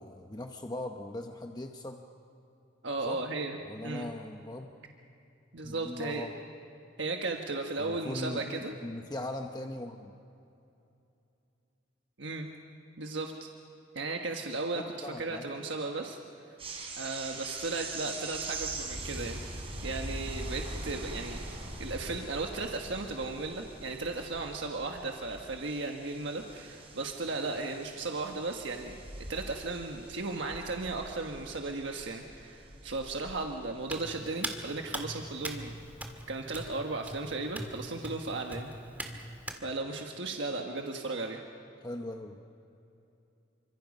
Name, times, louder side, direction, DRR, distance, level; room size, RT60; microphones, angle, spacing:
voice 1, 0.0-2.0 3.1-3.3 3.6-4.7 5.6-6.3 7.8-10.1 14.7-15.5 41.8-42.4, left 1 dB, 20° left, 4 dB, 0.9 m, -40 dB
voice 2, 2.8-4.1 5.5-6.3 7.0-8.7 12.2-12.5 13.0-13.5 13.9-16.2 17.0-19.4 19.8-21.4 21.8-29.0 29.3-35.7 36.3-38.7 39.6-41.4, right 3 dB, 70° right, 2 dB, 1.5 m, -35 dB
sound 1, 16.6-35.2 35.5-35.9, right 2 dB, 30° right, 4.1 m, -43 dB
Hands, 33.9-39.6, right 1 dB, 10° right, 1.9 m, -41 dB
28.0 x 25.5 x 5.4 m, 2.8 s
head